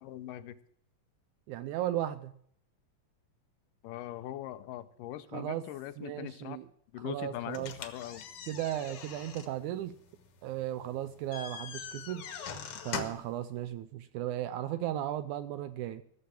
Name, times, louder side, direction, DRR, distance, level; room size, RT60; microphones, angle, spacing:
voice 1, 0.0-0.5 3.8-6.6 6.9-8.2, left 13 dB, 80° left, 13 dB, 2.3 m, -41 dB
voice 2, 1.5-2.3 5.3-5.7 6.0-6.7 7.0-7.8 8.5-10.0 10.4-12.3 12.8-16.0, right 12 dB, 80° right, 13 dB, 1.8 m, -36 dB
sound 1, 7.5-13.4, left 6 dB, 55° left, 1.7 m, -43 dB
15.0 x 7.0 x 7.7 m, 0.66 s
omnidirectional pair, 3.9 m